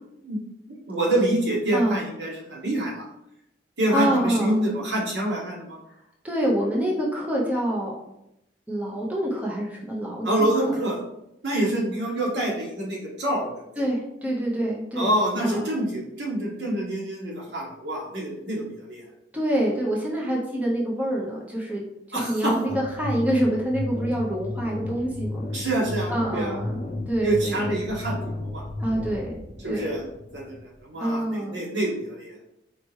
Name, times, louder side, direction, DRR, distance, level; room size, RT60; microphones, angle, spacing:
voice 1, 0.7-3.1 3.8-5.8 10.2-11.0 11.4-13.6 15.0-19.0 22.1-22.5 25.5-26.5 27.2-28.6 29.6-30.0 30.3-32.3, right 1 dB, 80° right, -3 dB, 1.2 m, -26 dB
voice 2, 3.9-4.6 6.2-7.9 8.7-10.8 13.8-15.1 15.4-15.6 19.3-21.8 22.1-25.4 26.1-26.8 27.1-27.7 28.8-29.4 29.7-29.9 31.0-31.6, right 1 dB, 10° right, -4 dB, 0.7 m, -26 dB
sound 1, 22.7-30.9, left 2 dB, 40° left, 0.7 m, -33 dB
4.4 x 2.9 x 3.1 m, 0.83 s
head